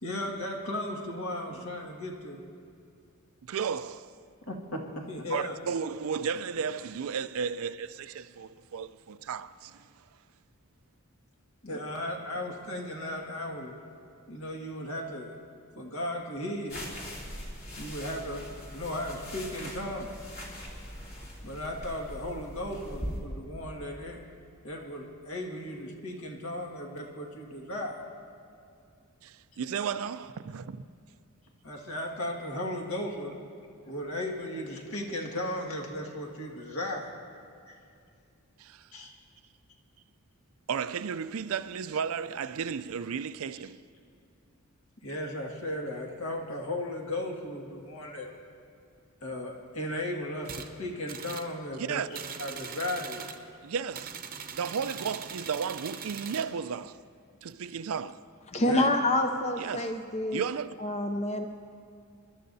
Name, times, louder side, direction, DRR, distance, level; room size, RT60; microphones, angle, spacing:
voice 1, 0.0-2.4 4.5-5.6 11.6-13.8 14.3-15.4 15.8-16.8 17.8-20.2 21.4-24.2 24.6-28.1 31.6-33.4 33.9-37.1 37.7-37.8 38.9-39.1 45.0-48.3 49.2-53.3 58.6-58.9, left 1 dB, 70° left, 1.9 m, -36 dB
voice 2, 3.4-4.2 5.3-10.1 29.2-30.8 38.6-38.9 40.7-43.8 51.7-52.1 53.6-54.2 54.5-57.0 57.4-58.3 59.6-60.0 60.3-60.7, right 6 dB, 70° right, 0.4 m, -34 dB
sound 1, 16.7-23.2, equal, 45° left, 2.7 m, -41 dB
sound 2, 50.4-50.7 51.1-51.5 52.1-53.4 53.9-56.5, right 7 dB, 45° right, 0.8 m, -41 dB
voice 3, 58.5-60.4 60.8-61.5, left 1 dB, 30° left, 0.5 m, -27 dB
27.5 x 12.0 x 2.7 m
head